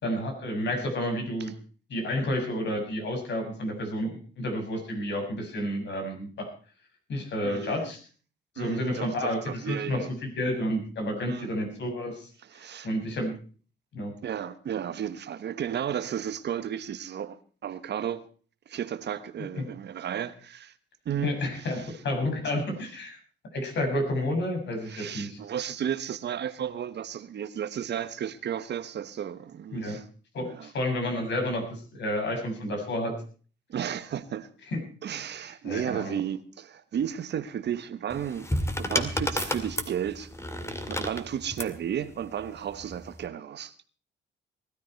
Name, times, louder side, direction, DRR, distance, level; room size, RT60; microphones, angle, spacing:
voice 1, 0.0-1.5 1.9-6.5 7.1-8.0 8.6-13.3 13.9-14.1 19.6-19.7 21.2-23.2 23.5-25.4 29.7-30.0 30.3-33.1 34.7-34.8 35.4-36.1, left 1 dB, 65° left, 6.9 m, -30 dB
voice 2, 7.4-7.9 8.6-10.1 11.3-11.5 12.4-12.9 14.2-18.2 18.7-20.7 21.0-21.9 22.2-22.7 24.9-30.0 30.4-30.7 33.7-34.5 35.0-38.5 38.8-40.3 40.9-43.7, right 9 dB, 60° right, 1.3 m, -33 dB
sound 1, 38.1-41.8 42.8-43.2, left 1 dB, 15° left, 2.2 m, -31 dB
19.5 x 13.5 x 4.6 m
cardioid pair, 90°, 20 cm